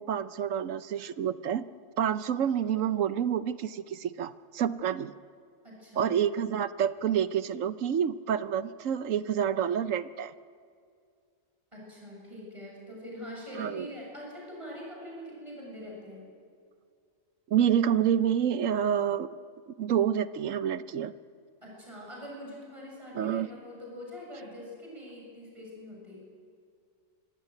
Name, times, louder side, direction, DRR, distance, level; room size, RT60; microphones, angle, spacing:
voice 1, 0.0-1.6 2.0-5.1 6.0-10.3 13.5-13.9 17.5-19.3 19.7-21.1 23.1-23.5, right 9 dB, 75° right, 14 dB, 1.1 m, -28 dB
voice 2, 5.6-6.1 11.7-16.3 21.6-26.2, left 1 dB, 20° right, -3 dB, 7.3 m, -44 dB
25.0 x 16.5 x 9.3 m, 2.2 s
omnidirectional pair, 1.4 m